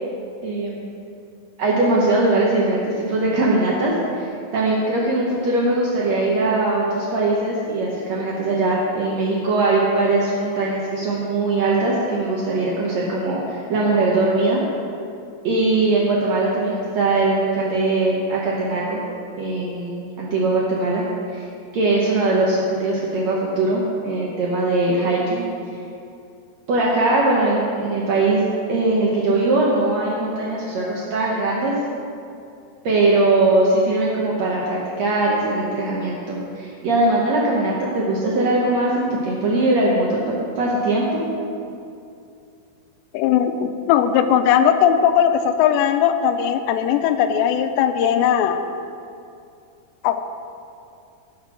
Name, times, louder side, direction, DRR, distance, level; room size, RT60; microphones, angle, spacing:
voice 1, 0.4-0.9 1.6-2.8 3.1-14.6 15.4-19.0 19.4-21.0 21.3-21.5 21.7-25.4 26.7-28.4 28.7-31.7 32.8-40.2 40.6-41.2, right 2 dB, 85° right, -4 dB, 1.5 m, -20 dB
voice 2, 43.1-48.6 50.0-50.2, left 9 dB, 85° left, 8 dB, 2.8 m, -18 dB
14.0 x 6.0 x 6.0 m, 2.5 s
omnidirectional pair, 4.9 m